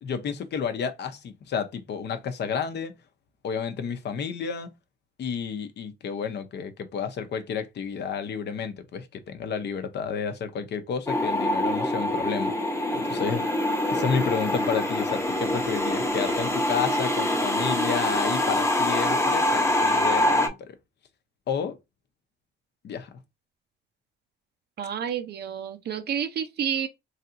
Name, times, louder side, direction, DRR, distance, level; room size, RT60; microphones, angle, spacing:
voice 1, 0.0-2.9 3.4-4.7 5.2-12.5 12.9-13.4 13.8-20.8 21.5-21.8 22.8-23.2, left 6 dB, 60° left, 0.7 m, -31 dB
sound 1, 11.1-20.5, left 1 dB, 15° left, 0.7 m, -25 dB
voice 2, 24.8-26.9, right 8 dB, 55° right, 0.5 m, -30 dB
3.2 x 2.7 x 2.5 m
cardioid pair, 90°, 20 cm